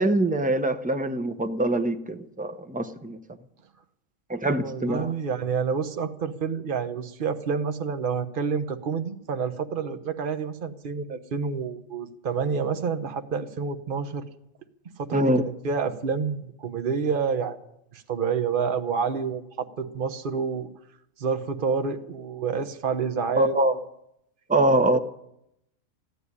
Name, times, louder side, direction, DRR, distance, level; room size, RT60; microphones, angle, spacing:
voice 1, 0.0-3.2 4.3-5.1 15.1-15.4 23.4-23.8 24.5-25.0, right 1 dB, 10° right, 0.6 m, -24 dB
voice 2, 4.6-14.2 15.0-17.6 17.9-20.7 21.2-23.6 24.9-25.0, right 5 dB, 45° right, 1.1 m, -28 dB
14.5 x 9.9 x 9.8 m
omnidirectional pair, 1.4 m